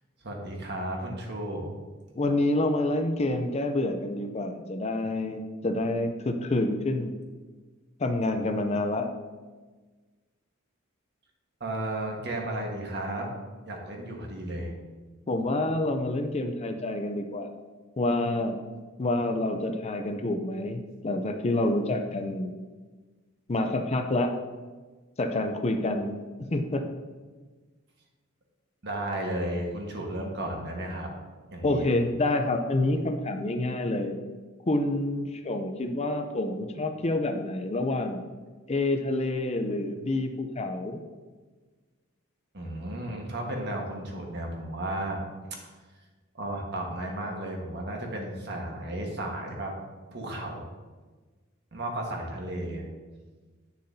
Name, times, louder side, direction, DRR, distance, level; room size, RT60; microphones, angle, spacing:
voice 1, 0.2-1.7 11.6-13.3 13.7-14.7 28.8-31.1 31.5-31.9 42.5-45.2 46.3-49.7 50.1-50.7 51.7-52.9, right 1 dB, 55° right, 0 dB, 1.5 m, -33 dB
voice 2, 2.1-7.1 8.0-9.1 15.3-17.5 18.0-18.6 19.0-22.5 23.5-24.3 25.2-26.2 26.5-26.8 31.6-34.1 34.7-38.2 38.7-41.0, left 2 dB, 30° left, 6 dB, 0.5 m, -28 dB
9.7 x 6.6 x 2.7 m, 1.3 s
head